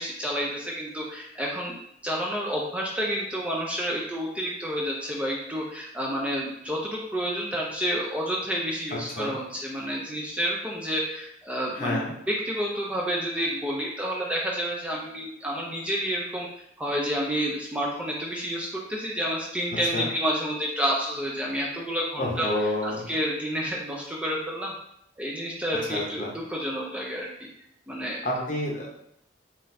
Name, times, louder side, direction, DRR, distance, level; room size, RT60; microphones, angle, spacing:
voice 1, 0.0-1.8 2.0-16.5 16.8-22.5 22.8-24.7 25.2-27.5 27.9-28.2, equal, 5° right, -3 dB, 0.3 m, -29 dB
voice 2, 11.7-12.1 19.9-20.1 22.2-23.1 25.8-26.3 28.2-29.1, left 1 dB, 45° left, -1 dB, 0.7 m, -29 dB
3.7 x 2.4 x 2.6 m, 0.74 s
head